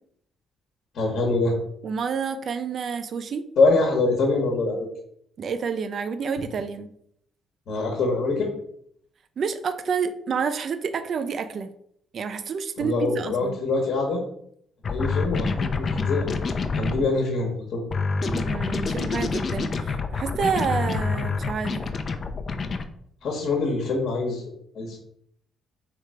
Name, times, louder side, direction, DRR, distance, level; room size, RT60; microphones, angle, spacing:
voice 1, 0.9-1.5 3.6-4.9 7.7-8.5 12.8-14.2 14.9-16.3 16.8-17.8 18.2-18.4 23.2-25.0, left 3 dB, 70° left, 1 dB, 1.1 m, -24 dB
voice 2, 1.8-3.4 5.4-6.9 9.4-11.7 12.1-13.6 18.3-21.9, right 6 dB, 55° right, 9 dB, 0.4 m, -29 dB
sound 1, 14.8-17.0 17.9-22.8, left 4 dB, 45° left, 0.5 m, -27 dB
3.4 x 3.2 x 4.8 m, 0.68 s
cardioid pair, 90°, 0 cm